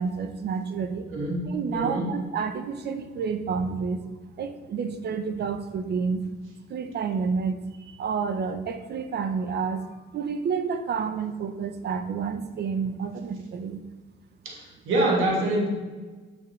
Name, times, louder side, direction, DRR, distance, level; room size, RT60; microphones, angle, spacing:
voice 1, 0.0-1.1 1.4-4.1 4.4-6.2 6.7-13.8, right 5 dB, 55° right, 8 dB, 0.7 m, -29 dB
voice 2, 1.1-2.1 14.4-14.6 14.9-15.7, right 1 dB, 85° right, -2 dB, 1.5 m, -25 dB
7.1 x 6.6 x 3.2 m, 1.3 s
cardioid pair, 90°, 20 cm